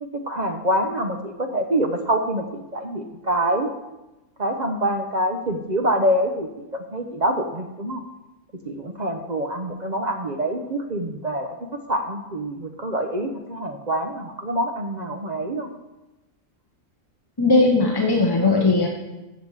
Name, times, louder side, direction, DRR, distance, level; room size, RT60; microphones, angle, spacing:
voice 1, 0.0-3.7 4.4-6.7 6.9-8.0 8.7-15.7, right 1 dB, 35° right, 5 dB, 0.8 m, -25 dB
voice 2, 17.4-18.9, left 3 dB, 20° left, 0 dB, 0.8 m, -18 dB
14.5 x 7.3 x 4.8 m, 1.0 s
omnidirectional pair, 1.5 m